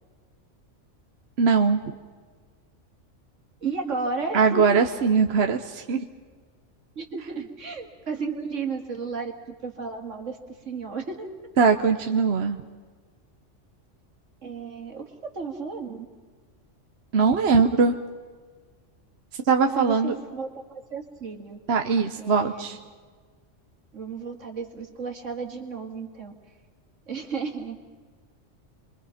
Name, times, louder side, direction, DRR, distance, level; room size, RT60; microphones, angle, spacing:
voice 1, 1.4-1.8 4.3-6.0 11.6-12.6 17.1-18.0 19.5-20.1 21.7-22.8, right 5 dB, 60° right, 5 dB, 1.1 m, -21 dB
voice 2, 3.6-4.7 7.0-10.4 10.6-11.3 14.4-16.1 19.7-21.6 22.2-22.8 23.9-26.3 27.1-27.8, right 5 dB, 75° right, 4 dB, 2.5 m, -33 dB
28.0 x 23.0 x 5.8 m, 1.5 s
omnidirectional pair, 1.3 m